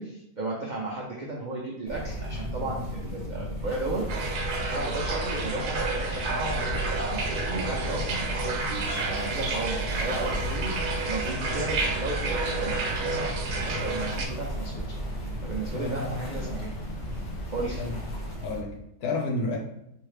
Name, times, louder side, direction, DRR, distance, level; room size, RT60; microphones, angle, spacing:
voice 1, 0.0-4.0 4.7-14.8 15.1-16.7 17.5-17.8, right 2 dB, 70° right, -3 dB, 0.4 m, -34 dB
sound 1, 1.9-18.6, equal, 10° left, 0.9 m, -34 dB
sound 2, 4.1-14.3, right 3 dB, 90° right, 1.2 m, -31 dB
Ocean, 5.8-18.3, left 3 dB, 65° left, 1.1 m, -48 dB
voice 2, 15.7-16.4 17.8-17.9 18.4-19.6, left 2 dB, 85° left, 1 dB, 1.3 m, -31 dB
3.8 x 2.8 x 3.2 m, 0.81 s
omnidirectional pair, 1.6 m